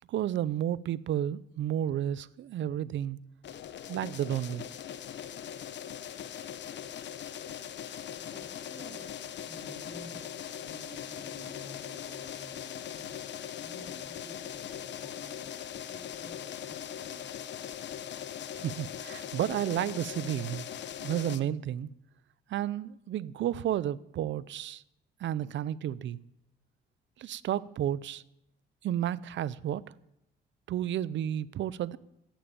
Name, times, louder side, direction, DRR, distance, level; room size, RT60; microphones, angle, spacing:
voice 1, 0.1-3.2 3.9-4.7 18.5-20.6 21.0-21.9 22.5-24.8 25.2-26.2 27.2-28.2 28.8-29.8 30.7-32.0, right 11 dB, 70° right, 0.7 m, -32 dB
sound 1, 3.4-21.4, left 9 dB, 65° left, 1.0 m, -40 dB
voice 2, 8.2-10.3 10.6-17.2, equal, 25° left, 7.2 m, -51 dB
14.5 x 10.0 x 8.8 m
cardioid pair, 90°, 20 cm